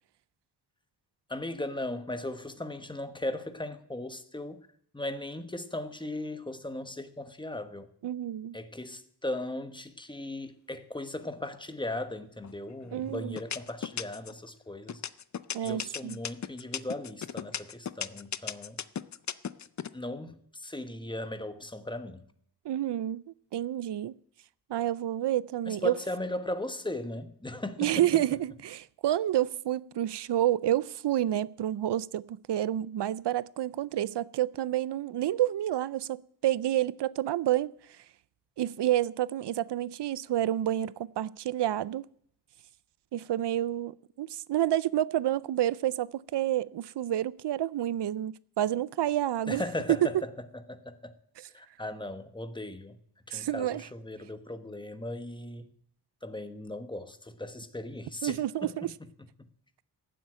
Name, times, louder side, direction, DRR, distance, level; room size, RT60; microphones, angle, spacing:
voice 1, 1.3-4.7 4.9-7.9 8.5-15.0 15.6-18.8 19.9-22.2 25.7-28.0 49.5-50.3 50.7-51.1 51.5-53.0 53.3-55.7 56.2-58.7, left 1 dB, 10° left, 1.2 m, -37 dB
voice 2, 8.0-8.6 12.9-13.4 15.5-16.2 22.6-23.2 23.5-24.2 24.7-26.0 27.8-37.7 38.6-42.1 43.1-49.6 51.4-51.5 53.3-53.8 58.2-58.9, right 12 dB, 80° right, 0.5 m, -29 dB
sound 1, 12.4-12.9 13.4-14.4 14.9-19.9, left 8 dB, 45° left, 0.5 m, -35 dB
14.5 x 7.8 x 8.8 m
wide cardioid pair, 110°, 41 cm